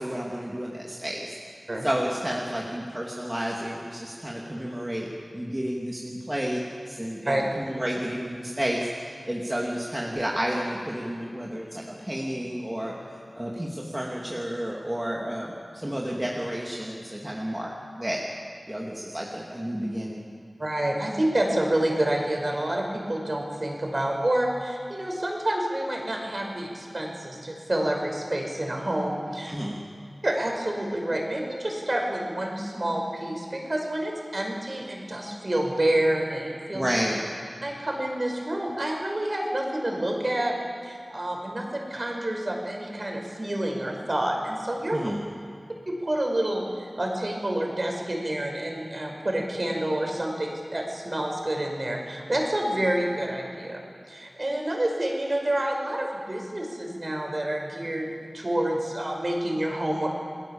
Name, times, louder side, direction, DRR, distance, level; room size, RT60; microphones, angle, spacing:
voice 1, 0.0-1.3 1.8-5.1 5.3-6.6 6.9-17.7 18.0-18.2 18.7-20.2 29.5-29.8 36.7-37.2 44.9-45.2, equal, 20° right, -3 dB, 2.8 m, -31 dB
voice 2, 20.6-29.5 30.2-36.9 37.6-40.5 40.8-45.1 45.9-53.8 54.1-60.1, right 1 dB, 40° right, 1 dB, 5.4 m, -28 dB
28.0 x 20.0 x 7.3 m, 2.2 s
wide cardioid pair, 70°, 0 cm